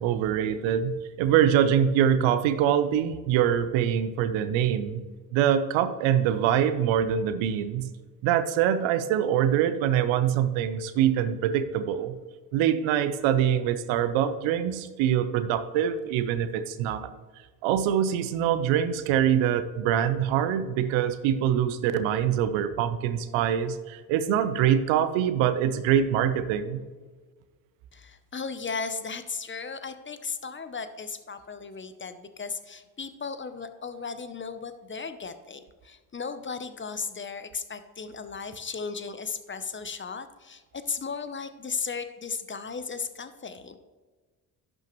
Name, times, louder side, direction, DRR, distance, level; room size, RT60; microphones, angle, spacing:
voice 1, 0.0-5.0 5.3-7.9 8.2-12.1 12.5-17.1 17.6-26.8, right 9 dB, 70° right, 11 dB, 0.8 m, -24 dB
voice 2, 27.9-43.8, left 5 dB, 25° left, 11 dB, 0.7 m, -36 dB
11.5 x 6.1 x 3.1 m, 1.4 s
hypercardioid pair, 50°, 48 cm